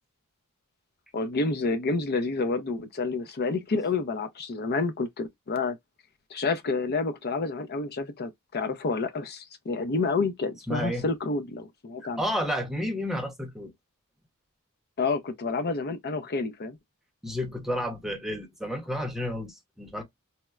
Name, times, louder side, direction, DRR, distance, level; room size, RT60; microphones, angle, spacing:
voice 1, 1.1-5.8 6.3-12.2 15.0-16.8, left 3 dB, 50° left, 0.5 m, -29 dB
voice 2, 10.7-11.1 12.2-13.7 17.2-20.0, equal, ahead, 0.7 m, -31 dB
4.2 x 2.0 x 2.2 m
head